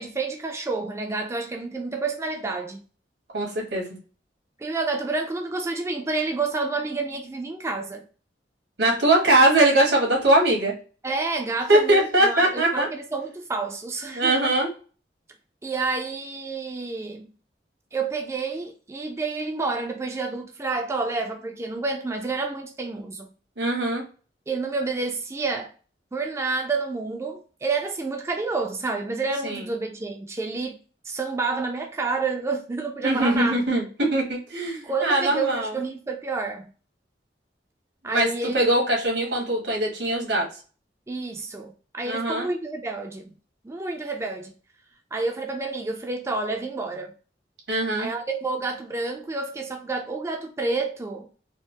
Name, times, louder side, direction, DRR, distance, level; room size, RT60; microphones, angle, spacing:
voice 1, 0.0-2.8 4.6-8.1 11.0-14.5 15.6-17.3 17.9-23.3 24.5-25.7 26.1-30.8 31.0-33.6 34.8-36.7 38.0-38.6 41.1-43.3 43.6-44.5 45.1-47.1 48.0-51.3, right 3 dB, 15° right, 0.3 m, -29 dB
voice 2, 3.3-3.9 8.8-10.7 11.7-12.9 14.1-14.7 23.6-24.0 29.4-29.6 33.0-35.8 38.0-38.3 38.5-40.5 42.0-42.5 47.7-48.1, right 1 dB, 85° right, 1.6 m, -21 dB
4.3 x 2.0 x 2.7 m
head